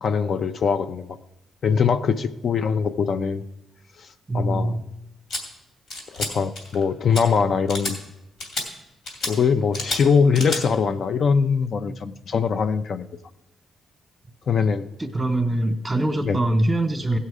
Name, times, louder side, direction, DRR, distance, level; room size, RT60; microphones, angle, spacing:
voice 1, 0.0-1.2 1.6-3.4 4.0-4.1 4.3-4.8 6.1-8.0 9.2-13.1 14.5-14.9 16.2-16.4, left 6 dB, 60° left, 9 dB, 0.5 m, -22 dB
voice 2, 4.3-4.8 15.0-17.2, right 1 dB, 15° right, 4 dB, 1.0 m, -23 dB
sound 1, 5.3-5.4 5.9-6.3 6.5-6.8 7.1-7.2 7.7-7.9 8.4-8.6 9.1-9.3 9.7-10.0 10.3-10.6, left 2 dB, 80° left, 2.7 m, -29 dB
16.0 x 5.6 x 4.9 m, 0.88 s
cardioid pair, 70°, 0 cm